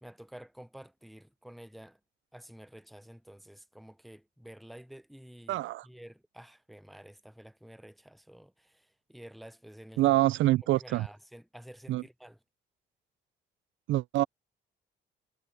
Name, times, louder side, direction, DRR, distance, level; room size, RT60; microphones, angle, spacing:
voice 1, 0.0-2.0 2.3-10.2 10.8-12.4, equal, ahead, 0.5 m, -50 dB
voice 2, 5.5-5.9 10.0-11.1 11.9-12.0 13.9-14.2, right 16 dB, 75° right, 0.4 m, -26 dB
cardioid pair, 90°, 20 cm